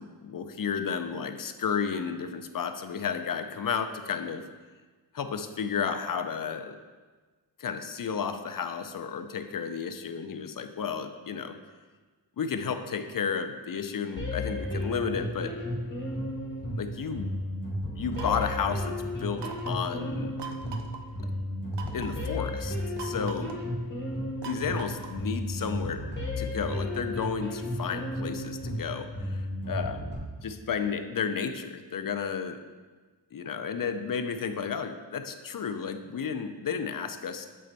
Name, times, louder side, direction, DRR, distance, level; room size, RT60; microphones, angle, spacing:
voice 1, 0.0-4.5 5.1-6.8 7.6-11.6 12.4-15.6 16.8-17.4 17.9-20.4 21.2-21.3 21.9-23.6 24.4-32.6 33.3-37.5, left 6 dB, 55° left, 8 dB, 0.5 m, -32 dB
sound 1, 14.2-30.2, left 1 dB, 25° left, 1.9 m, -33 dB
sound 2, 18.1-18.7 19.4-19.9 20.4-21.0 21.7-22.2 23.0-23.6 24.4-25.3, right 6 dB, 80° right, 0.6 m, -41 dB
7.6 x 4.2 x 4.0 m, 1.4 s
wide cardioid pair, 80°, 41 cm